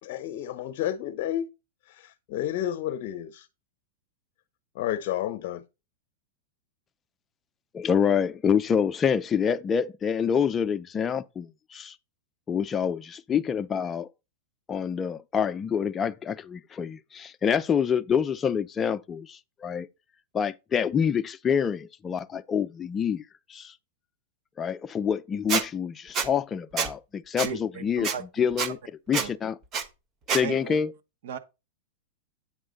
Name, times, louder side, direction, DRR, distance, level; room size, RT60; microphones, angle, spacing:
voice 1, 0.0-1.5 1.9-3.5 4.7-5.6, left 11 dB, 55° left, 0.7 m, -31 dB
voice 2, 7.7-12.0 12.5-14.1 14.7-19.9 20.3-23.2 23.5-23.7 24.6-28.1 28.4-28.8 29.1-29.6 30.3-30.9, left 7 dB, 20° left, 0.5 m, -27 dB
Squeak, 25.5-25.6 26.1-26.3 26.8-26.9 27.4-27.5 28.0-28.1 28.6-28.7 29.1-29.3 29.7-29.8 30.3-30.4, right 6 dB, 30° right, 1.0 m, -26 dB
voice 3, 27.4-28.8 29.1-29.3 30.4-30.8 31.2-31.4, right 7 dB, 70° right, 1.1 m, -37 dB
8.8 x 3.6 x 5.2 m
hypercardioid pair, 130°, 0 cm